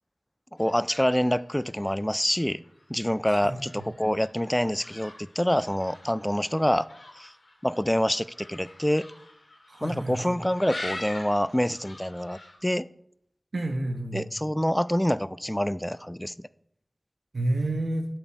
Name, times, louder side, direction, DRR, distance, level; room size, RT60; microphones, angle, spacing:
sound 1, 0.6-12.6, left 2 dB, 90° left, 2.2 m, -45 dB
voice 1, 0.6-2.6 2.9-6.9 7.2-7.3 7.6-9.1 9.8-12.9 14.1-16.3, equal, 10° left, 0.3 m, -26 dB
voice 2, 9.7-10.3 13.5-14.3 17.3-18.1, right 1 dB, 75° right, 1.2 m, -29 dB
8.2 x 7.6 x 4.7 m
cardioid pair, 40°, 0 cm